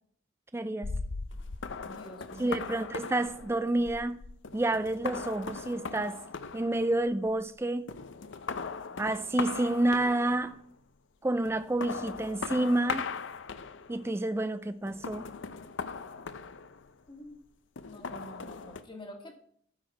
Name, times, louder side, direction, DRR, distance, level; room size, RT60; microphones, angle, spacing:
voice 1, 0.5-0.9 2.4-4.2 4.5-6.2 6.5-7.9 9.0-10.6 11.2-13.1 13.9-15.3, right 2 dB, 10° right, 0.3 m, -29 dB
sound 1, 0.8-7.5 7.9-10.6 11.4-14.1 14.9-17.1 17.8-18.8, left 5 dB, 65° left, 0.6 m, -39 dB
voice 2, 1.9-2.6 17.1-17.4 17.9-19.4, equal, 25° left, 1.6 m, -47 dB
12.0 x 4.7 x 5.7 m
head